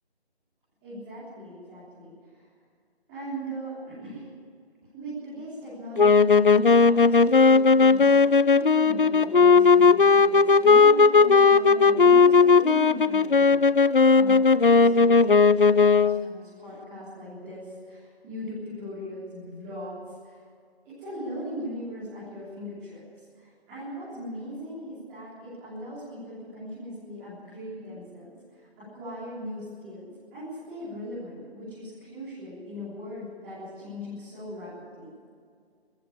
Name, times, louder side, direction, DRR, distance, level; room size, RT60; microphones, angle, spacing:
voice 1, 0.8-2.5 3.1-4.3 4.9-13.7 14.1-20.4 20.9-35.1, equal, 10° right, -14 dB, 4.1 m, -39 dB
sound 1, 6.0-16.3, left 4 dB, 55° left, 0.6 m, -17 dB
21.5 x 14.5 x 8.8 m, 2.1 s
figure-of-eight pair, 170°, 32 cm